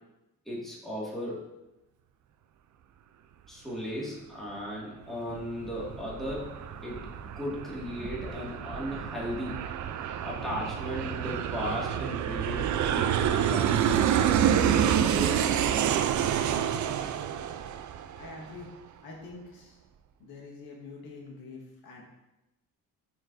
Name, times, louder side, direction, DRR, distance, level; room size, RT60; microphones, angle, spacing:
voice 1, 0.5-1.5 3.5-6.5 6.8-7.0 7.4-9.6 10.2-15.4, equal, ahead, -6 dB, 2.0 m, -36 dB
sound 1, 5.3-17.7, right 3 dB, 25° right, 1.1 m, -50 dB
Aircraft, 5.4-18.6, right 9 dB, 55° right, 0.5 m, -28 dB
voice 2, 18.1-18.7 19.0-19.8 20.2-22.0, left 3 dB, 90° left, -2 dB, 1.6 m, -45 dB
9.4 x 4.3 x 2.6 m, 0.97 s
cardioid pair, 110°, 36 cm